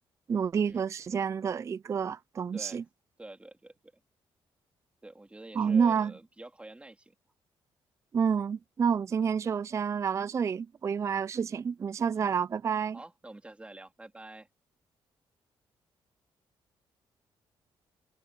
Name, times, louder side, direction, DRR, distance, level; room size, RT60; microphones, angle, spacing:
voice 1, 0.3-2.8 5.6-6.1 8.1-13.0, right 6 dB, 30° right, 0.3 m, -29 dB
voice 2, 2.5-2.8 3.2-4.0 5.0-7.1 9.2-9.3 12.9-14.5, right 2 dB, 10° right, 3.3 m, -48 dB
cardioid pair, 110°, 9 cm